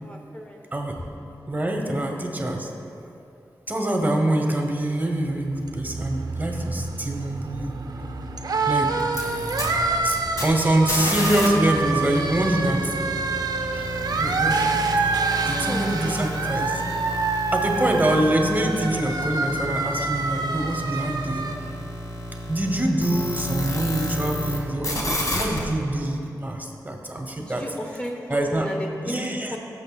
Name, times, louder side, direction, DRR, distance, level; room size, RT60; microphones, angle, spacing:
voice 1, 0.0-0.6 1.0-1.1 15.4-16.4 27.3-29.2 29.5-29.6, equal, 15° left, 1 dB, 0.8 m, -34 dB
voice 2, 1.5-2.7 3.7-7.7 8.7-8.9 10.0-12.9 13.7-13.9 14.2-14.8 15.5-16.8 17.5-21.4 22.5-27.6 28.3-28.7 29.0-29.6, right 1 dB, 25° right, 2 dB, 1.0 m, -25 dB
sound 1, 5.1-21.6, right 3 dB, 65° right, 0.5 m, -27 dB
sound 2, 9.0-11.5 11.7-24.6 24.8-25.6, left 1 dB, 55° left, 1.5 m, -32 dB
15.0 x 6.5 x 2.3 m, 2.7 s
cardioid pair, 55°, 7 cm